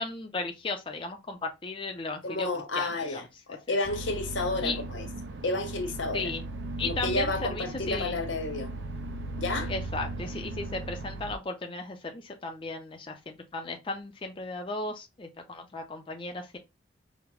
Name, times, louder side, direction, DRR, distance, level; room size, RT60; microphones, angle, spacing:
voice 1, 0.0-2.5 2.8-3.2 4.6-4.8 6.1-6.4 6.8-8.2 9.7-16.6, left 3 dB, 25° left, 0.4 m, -35 dB
voice 2, 2.2-5.1 5.4-6.3 6.8-8.7 9.4-9.7, left 2 dB, 90° left, 0.8 m, -31 dB
sound 1, 3.8-11.4, right 2 dB, 65° right, 0.4 m, -37 dB
4.9 x 2.0 x 3.0 m
head